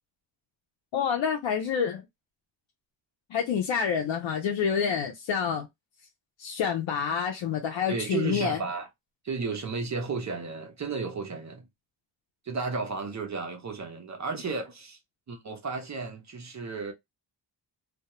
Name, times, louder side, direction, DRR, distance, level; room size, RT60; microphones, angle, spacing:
voice 1, 0.9-2.0 3.3-5.7 6.4-8.6, left 7 dB, 85° left, 0.6 m, -28 dB
voice 2, 7.9-8.9 9.2-11.7 12.4-15.0 15.3-16.9, right 4 dB, 40° right, 0.6 m, -33 dB
2.2 x 2.0 x 2.9 m
wide cardioid pair, 110°, 45 cm